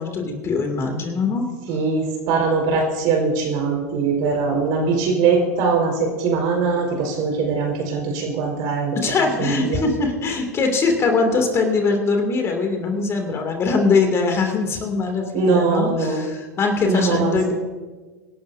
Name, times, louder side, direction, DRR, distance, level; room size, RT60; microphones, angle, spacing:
voice 1, 0.0-1.5 8.9-17.5, left 4 dB, 30° left, 3 dB, 2.6 m, -22 dB
voice 2, 1.7-9.0 9.4-9.8 15.3-16.2 16.8-17.5, right 4 dB, 55° right, 1 dB, 4.8 m, -21 dB
25.5 x 11.5 x 2.7 m, 1.4 s
hypercardioid pair, 95°, 9 cm